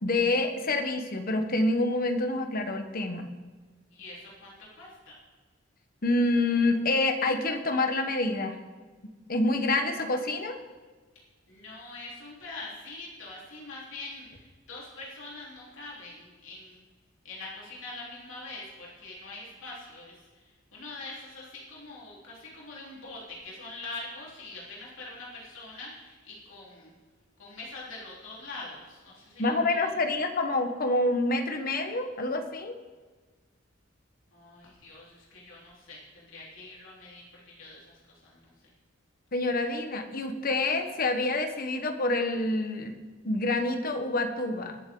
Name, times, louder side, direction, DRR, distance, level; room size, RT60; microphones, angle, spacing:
voice 1, 0.0-3.3 6.0-8.6 9.3-10.6 29.4-32.8 39.3-42.9 43.2-44.8, left 2 dB, 50° left, 6 dB, 1.2 m, -27 dB
voice 2, 3.9-5.2 11.5-16.8 17.2-20.4 20.7-26.9 27.4-29.9 34.3-38.5, left 2 dB, 80° left, -5 dB, 3.8 m, -44 dB
22.0 x 7.9 x 3.9 m, 1.4 s
head